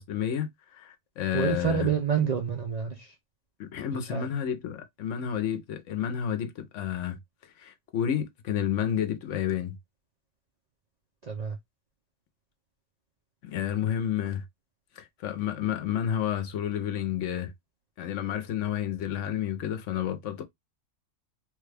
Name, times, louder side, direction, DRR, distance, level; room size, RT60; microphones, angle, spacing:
voice 1, 0.0-1.9 3.6-7.2 7.6-9.8 13.4-14.4 15.0-17.5 18.0-20.4, left 9 dB, 70° left, 1.0 m, -30 dB
voice 2, 1.3-3.2 3.9-4.3 11.2-11.6, right 7 dB, 55° right, 0.4 m, -28 dB
3.2 x 2.3 x 3.2 m
omnidirectional pair, 1.4 m